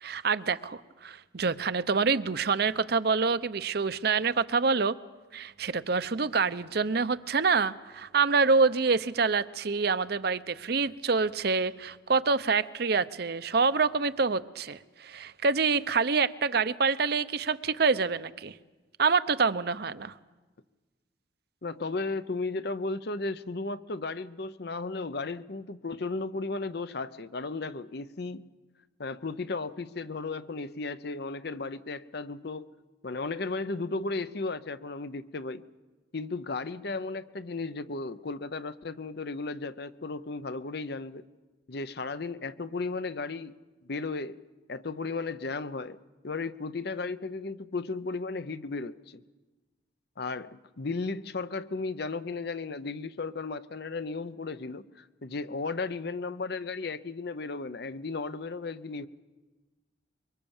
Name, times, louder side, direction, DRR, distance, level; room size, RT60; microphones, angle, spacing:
voice 1, 0.0-4.9 5.3-18.5 19.0-20.1, right 4 dB, 55° right, 13 dB, 0.7 m, -26 dB
voice 2, 21.6-28.4 29.0-32.7 33.0-35.6 36.1-41.2 41.7-43.5 43.9-44.4 44.7-46.0 46.2-49.2 50.2-59.1, left 3 dB, 55° left, 14 dB, 0.7 m, -35 dB
23.5 x 23.5 x 7.2 m, 1.2 s
head